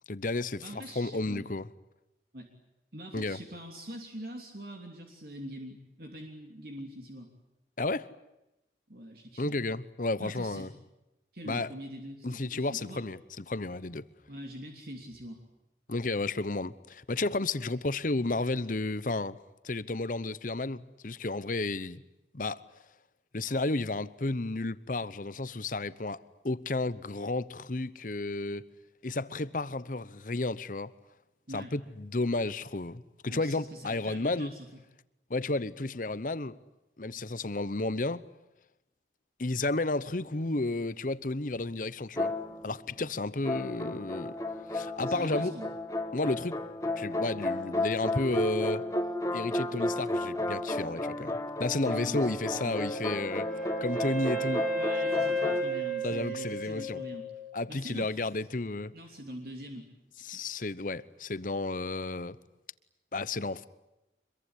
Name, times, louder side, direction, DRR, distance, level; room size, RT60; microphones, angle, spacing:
voice 1, 0.1-1.7 3.1-3.4 7.8-8.1 9.4-10.7 11.4-11.7 12.2-14.1 15.9-22.0 22.3-22.6 23.3-28.6 29.0-30.9 31.5-34.5 35.3-36.6 37.0-38.2 39.4-42.3 42.6-44.4 44.7-45.5 46.1-46.6 47.0-48.8 49.3-54.7 56.0-57.0 57.5-58.9 60.2-62.4 63.1-63.7, left 2 dB, 50° left, 0.9 m, -32 dB
voice 2, 0.6-1.5 2.3-2.5 2.9-7.3 8.9-9.6 10.2-10.7 11.3-13.0 14.3-15.4 31.5-31.7 33.3-34.7 45.0-45.7 51.8-52.3 52.6-52.8 54.7-57.3 57.7-58.2 58.9-59.9 60.2-60.4, equal, 55° right, 3.2 m, -44 dB
sound 1, 42.2-43.0 43.4-55.6, left 1 dB, 20° left, 1.5 m, -33 dB
Wind instrument woodwind instrument, 52.7-57.6, right 1 dB, 5° right, 3.8 m, -33 dB
25.5 x 22.5 x 10.0 m
head